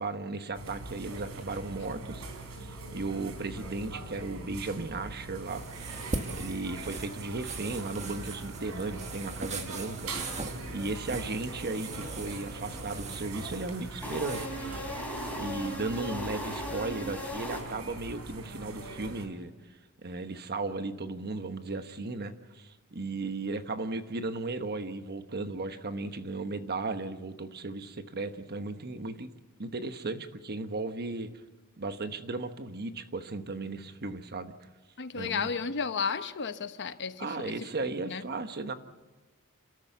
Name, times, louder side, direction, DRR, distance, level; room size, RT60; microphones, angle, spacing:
voice 1, 0.0-2.2 2.6-6.1 6.3-10.3 10.7-14.9 15.4-19.5 20.0-29.3 29.6-31.3 31.8-34.7 35.1-35.5 37.2-38.7, right 3 dB, 45° right, 9 dB, 1.2 m, -36 dB
sound 1, 0.5-19.3, right 2 dB, 85° right, 3.6 m, -42 dB
sound 2, 5.5-14.5, right 3 dB, 30° right, 1.7 m, -41 dB
sound 3, 14.0-18.1, equal, 5° left, 3.4 m, -38 dB
voice 2, 35.0-37.5 38.1-38.2, left 5 dB, 55° left, 11 dB, 0.9 m, -33 dB
29.0 x 13.5 x 8.2 m, 1.2 s
head